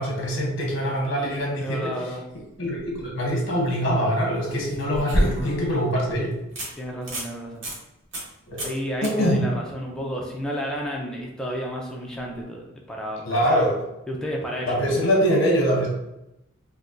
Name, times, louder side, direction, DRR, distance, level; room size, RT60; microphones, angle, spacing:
voice 1, 0.0-1.9 2.6-6.3 8.5-8.6 9.0-9.4 13.2-13.8 14.6-15.9, equal, 55° left, -2 dB, 0.9 m, -23 dB
voice 2, 1.6-2.2 6.8-7.6 8.6-13.2 13.5-13.7 14.1-14.7, equal, 5° left, -2 dB, 0.4 m, -31 dB
sound 1, 2.7-3.0 4.4-5.7 6.1-6.2 6.6-6.7 7.0-7.3 7.6-7.8 8.1-8.3 8.6-8.8 9.0-9.1 12.2-12.3, equal, 60° right, 1.1 m, -27 dB
4.0 x 2.2 x 2.5 m, 0.88 s
head